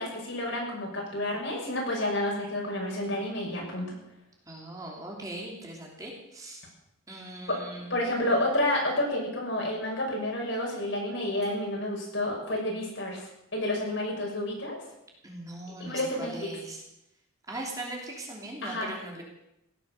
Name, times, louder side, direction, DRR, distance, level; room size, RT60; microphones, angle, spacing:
voice 1, 0.0-4.0 7.5-7.6 7.9-14.8 15.8-16.5 18.6-18.9, left 1 dB, 60° left, -1 dB, 6.2 m, -30 dB
voice 2, 4.5-6.6 7.1-7.9 15.2-16.8 17.5-19.2, right 1 dB, 15° right, -1 dB, 3.1 m, -40 dB
17.0 x 12.5 x 6.6 m, 0.84 s
head